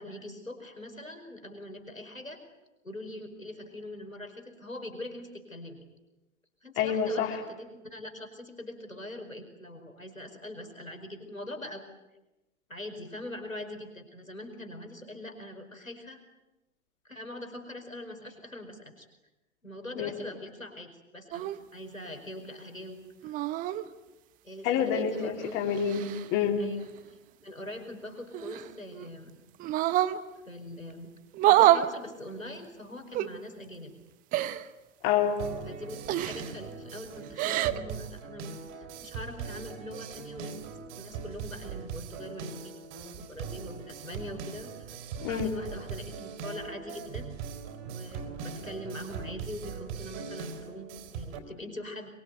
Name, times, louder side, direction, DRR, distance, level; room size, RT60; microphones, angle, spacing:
voice 1, 0.0-2.4 2.8-5.8 6.6-11.9 12.7-16.2 17.0-19.1 19.6-23.0 23.2-23.3 24.4-25.6 26.6-26.9 27.4-29.4 30.4-31.1 31.5-33.9 35.7-40.5 40.9-42.7 43.2-47.3 47.9-52.1, left 1 dB, 90° left, 4 dB, 5.0 m, -42 dB
voice 2, 6.8-7.4 20.0-20.1 24.6-26.6 35.0-35.4 45.2-45.5, left 7 dB, 30° left, 2 dB, 3.6 m, -27 dB
sound 1, 21.3-21.6 23.2-23.8 25.2-26.3 28.3-29.1 29.6-30.2 31.3-31.9 33.1-33.3 34.3-34.7 36.1-36.5 37.2-37.8, right 13 dB, 20° right, 1.0 m, -26 dB
sound 2, 35.4-51.4, right 6 dB, 35° right, 3.9 m, -40 dB
25.0 x 23.0 x 9.3 m, 1.0 s
figure-of-eight pair, 110°, 39 cm